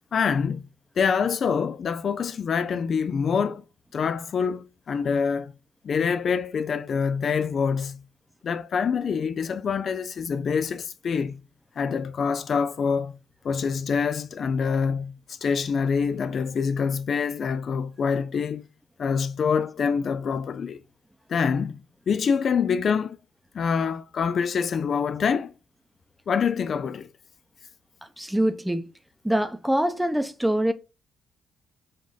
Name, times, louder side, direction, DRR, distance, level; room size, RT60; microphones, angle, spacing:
voice 1, 0.1-0.6 1.0-3.6 3.9-5.5 5.8-8.0 8.4-11.4 11.8-13.1 13.4-18.6 19.0-20.8 21.3-23.2 23.5-25.5 26.3-27.1, left 6 dB, 50° left, 0.3 m, -25 dB
voice 2, 28.0-28.9 29.2-30.7, right 1 dB, 5° right, 0.6 m, -24 dB
5.1 x 2.6 x 3.8 m
cardioid pair, 90°, 0 cm